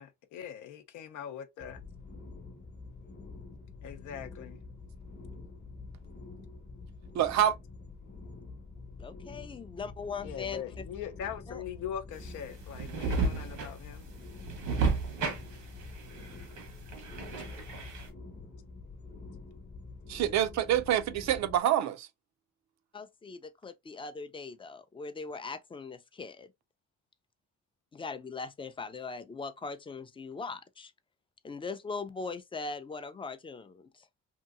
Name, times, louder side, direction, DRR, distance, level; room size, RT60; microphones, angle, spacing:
voice 1, 0.0-1.8 3.8-4.6 10.2-14.1, left 9 dB, 85° left, 0.6 m, -41 dB
sound 1, 1.6-21.6, left 3 dB, 35° left, 0.9 m, -47 dB
voice 2, 7.1-7.5 20.1-22.1, right 11 dB, 65° right, 0.5 m, -26 dB
voice 3, 9.0-10.8 11.5-11.6 17.4-17.9 22.9-26.5 27.9-30.9 31.4-33.9, left 4 dB, 20° left, 0.4 m, -40 dB
sound 2, 12.1-18.1, right 4 dB, 85° right, 1.1 m, -33 dB
2.8 x 2.6 x 2.4 m
cardioid pair, 90°, 30 cm